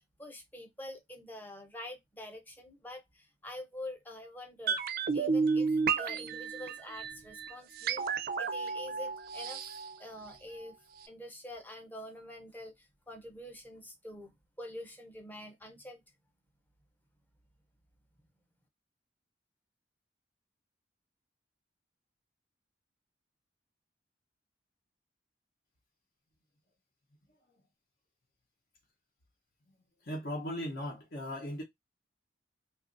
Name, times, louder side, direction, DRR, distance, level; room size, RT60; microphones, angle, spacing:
voice 1, 0.2-4.8 5.1-8.1 8.4-9.7 10.0-10.8 11.1-16.0, left 1 dB, 10° left, 0.6 m, -46 dB
sound 1, 4.7-10.7 11.0-11.1, right 5 dB, 50° right, 0.3 m, -32 dB
voice 2, 30.0-31.6, left 1 dB, 55° left, 0.7 m, -37 dB
2.9 x 2.4 x 2.4 m
head